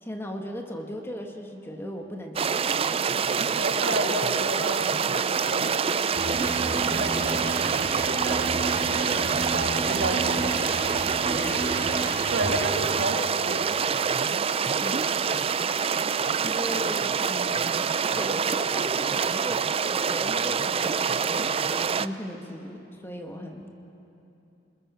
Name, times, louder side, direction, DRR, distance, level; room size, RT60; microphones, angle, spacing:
voice 1, 0.0-3.3 3.8-4.1 9.6-9.9 11.2-12.0 12.5-12.8 14.6-15.2 16.0-17.9 18.2-23.7, equal, 15° left, 2 dB, 1.8 m, -38 dB
sound 1, 2.4-22.1, right 6 dB, 35° right, 0.4 m, -26 dB
voice 2, 3.5-10.6 12.3-13.7 16.3-16.4, right 1 dB, 70° right, 2 dB, 2.2 m, -32 dB
Electric guitar, 6.1-12.6, right 1 dB, 50° right, 7.4 m, -33 dB
28.0 x 21.0 x 7.0 m, 2.9 s
head